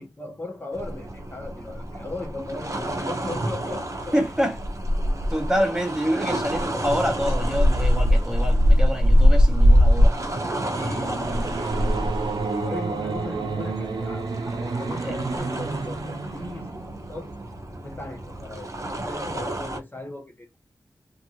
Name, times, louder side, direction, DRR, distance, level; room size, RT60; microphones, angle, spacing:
voice 1, 0.0-4.2 10.7-14.3 14.6-16.8 17.1-17.3 17.8-20.6, left 2 dB, 25° left, 0.9 m, -37 dB
sound 1, 0.7-19.8, equal, 40° right, 0.7 m, -24 dB
voice 2, 4.1-4.6 5.3-10.2 15.0-15.1, equal, 10° right, 0.9 m, -26 dB
sound 2, 10.2-17.4, right 4 dB, 75° right, 0.7 m, -31 dB
2.7 x 2.6 x 2.8 m
wide cardioid pair, 95°, 8 cm